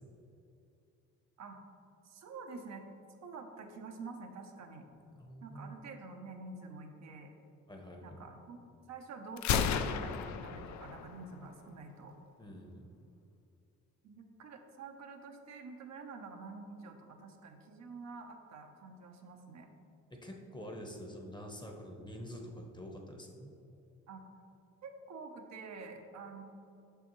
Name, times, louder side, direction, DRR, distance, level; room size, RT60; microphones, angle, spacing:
voice 1, 2.0-2.8 3.2-4.9 5.4-7.3 8.0-8.6 8.9-12.2 14.0-19.7 21.8-21.9 24.1-24.2 24.8-26.4, right 4 dB, 65° right, 4 dB, 0.8 m, -48 dB
voice 2, 5.2-5.7 7.7-8.2 12.4-12.8 20.2-23.5, equal, 15° left, 1 dB, 0.9 m, -47 dB
Gunshot gunfire, 9.4-11.3, left 7 dB, 70° left, 0.5 m, -33 dB
6.7 x 5.8 x 3.1 m, 2.7 s
cardioid pair, 90°, 30 cm